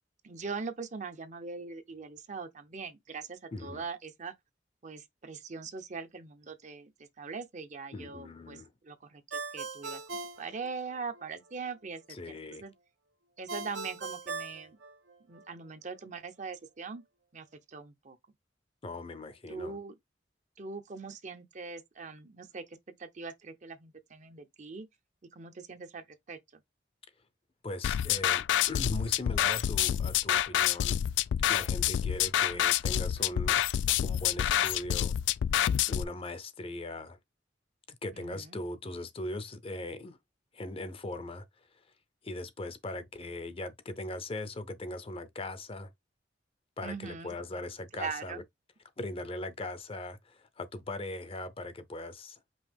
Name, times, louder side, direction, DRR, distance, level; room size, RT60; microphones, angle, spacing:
voice 1, 0.2-4.3 4.8-12.2 12.6-12.7 13.4-14.8 15.3-17.0 17.3-18.2 19.5-19.9 20.6-24.9 25.3-26.4 38.1-38.6 46.8-47.3 47.9-48.4, right 4 dB, 40° right, 0.6 m, -41 dB
voice 2, 3.5-3.8 7.9-8.7 12.1-12.6 18.8-19.8 27.6-31.0 31.5-33.6 34.0-35.1 35.9-37.2 37.9-40.2 40.5-41.8 42.2-45.9 46.8-48.4 49.0-52.4, left 2 dB, 30° left, 0.6 m, -40 dB
Ringtone, 9.3-11.3 13.5-15.4, right 4 dB, 80° right, 0.8 m, -40 dB
sound 1, 27.8-36.0, left 10 dB, 80° left, 0.3 m, -28 dB
5.3 x 2.9 x 3.4 m
head